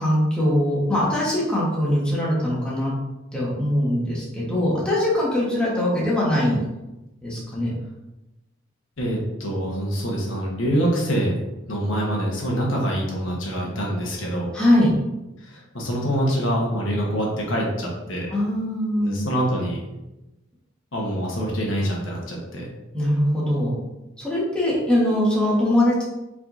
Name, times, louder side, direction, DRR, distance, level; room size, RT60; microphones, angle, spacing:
voice 1, 0.0-2.9 3.3-6.6 7.2-7.7 14.5-14.9 18.3-19.2 22.9-23.7 24.2-26.0, left 1 dB, 5° left, -7 dB, 1.3 m, -21 dB
voice 2, 9.0-11.3 11.7-14.5 15.4-18.3 19.0-19.8 20.9-22.7, equal, 75° left, -2 dB, 1.2 m, -25 dB
5.4 x 3.5 x 2.7 m, 0.99 s
head